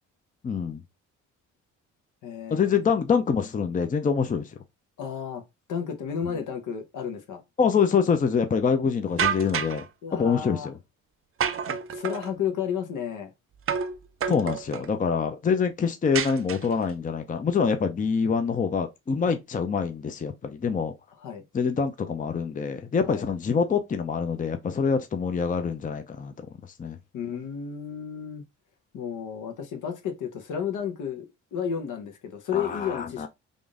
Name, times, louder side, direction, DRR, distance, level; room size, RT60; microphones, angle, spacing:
voice 1, 0.4-0.8 2.5-4.6 7.6-9.8 10.1-10.8 14.3-20.9 21.5-26.3 26.8-27.0 32.5-33.3, left 6 dB, 25° left, 0.6 m, -25 dB
voice 2, 2.2-2.8 5.0-5.4 5.7-7.4 10.0-10.7 11.7-13.3 19.2-19.4 21.2-21.4 23.0-23.2 27.1-28.4 28.9-33.3, left 8 dB, 70° left, 1.0 m, -32 dB
sound 1, 9.2-9.8 11.4-12.3 13.7-14.0 14.2-14.9 16.1-16.9, right 7 dB, 45° right, 0.6 m, -28 dB
3.6 x 2.6 x 3.5 m
cardioid pair, 85°, 32 cm